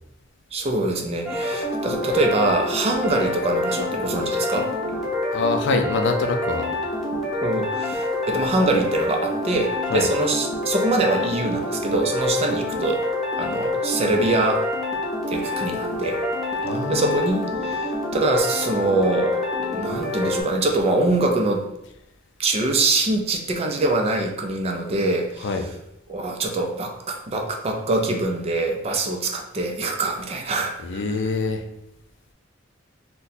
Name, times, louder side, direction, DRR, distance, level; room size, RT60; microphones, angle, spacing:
voice 1, 0.5-4.7 7.4-13.1 13.4-14.7 15.3-16.2 16.9-21.6 22.4-25.5 26.1-31.0, right 2 dB, 30° right, 2 dB, 0.4 m, -24 dB
sound 1, 1.3-20.4, left 1 dB, ahead, 0.7 m, -27 dB
voice 2, 5.3-6.7 9.9-10.1 16.6-17.2 25.4-25.6 30.8-31.6, left 3 dB, 65° left, 6 dB, 0.4 m, -25 dB
2.7 x 2.2 x 3.9 m, 0.84 s
head